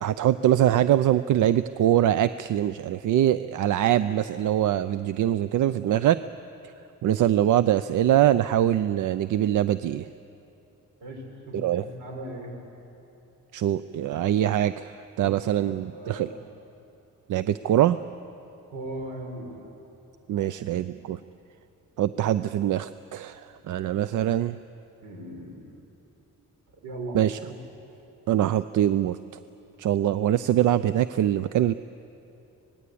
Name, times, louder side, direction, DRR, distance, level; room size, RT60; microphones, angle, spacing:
voice 1, 0.0-6.2 7.0-10.1 11.5-11.8 13.5-14.9 15.2-16.3 17.3-18.0 20.3-21.2 22.0-24.6 27.1-27.4 28.3-29.2 29.8-31.7, right 11 dB, 70° right, 14 dB, 0.5 m, -23 dB
voice 2, 11.0-12.5 15.2-16.4 18.7-19.6 20.4-20.8 25.0-25.6 26.8-27.6, right 1 dB, 85° right, 1 dB, 5.7 m, -39 dB
25.5 x 19.5 x 8.5 m, 2.8 s
wide cardioid pair, 165°, 32 cm